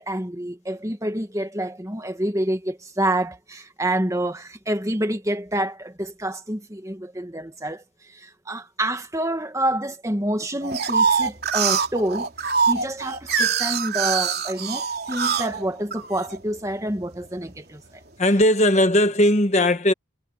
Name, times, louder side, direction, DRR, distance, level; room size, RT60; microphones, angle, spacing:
voice 1, 0.0-18.0, right 1 dB, 15° right, 1.9 m, -28 dB
sound 1, 10.6-16.4 16.9-17.6, right 6 dB, 50° right, 3.7 m, -24 dB
voice 2, 18.2-19.9, left 1 dB, 35° left, 1.1 m, -18 dB
head